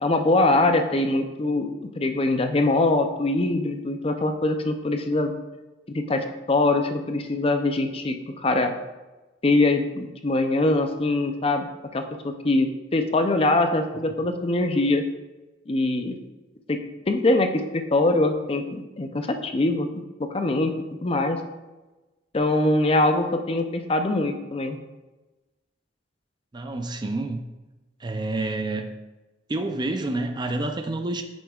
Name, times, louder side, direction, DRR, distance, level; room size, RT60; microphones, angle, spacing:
voice 1, 0.0-5.3 5.9-8.7 9.4-15.0 15.7-16.2 16.7-16.8 17.1-20.7 21.0-21.4 22.3-24.8, left 2 dB, 30° left, 6 dB, 0.5 m, -23 dB
voice 2, 26.5-27.4 28.0-28.9 29.5-31.2, right 2 dB, 25° right, 6 dB, 0.4 m, -28 dB
8.2 x 6.2 x 2.4 m, 1.1 s
head